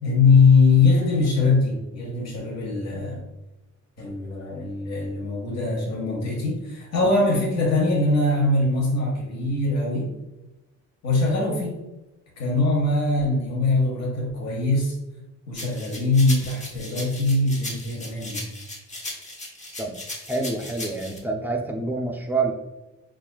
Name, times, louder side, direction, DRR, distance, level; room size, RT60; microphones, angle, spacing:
voice 1, 0.0-3.2 4.0-10.1 11.0-11.8 12.4-14.9 15.5-18.4, left 3 dB, 60° left, -2 dB, 1.1 m, -22 dB
sound 1, 15.5-21.2, left 1 dB, 25° left, 0.7 m, -37 dB
voice 2, 20.3-22.5, right 3 dB, 5° right, 2 dB, 0.4 m, -27 dB
5.6 x 2.4 x 2.3 m, 1.0 s
wide cardioid pair, 170°, 30 cm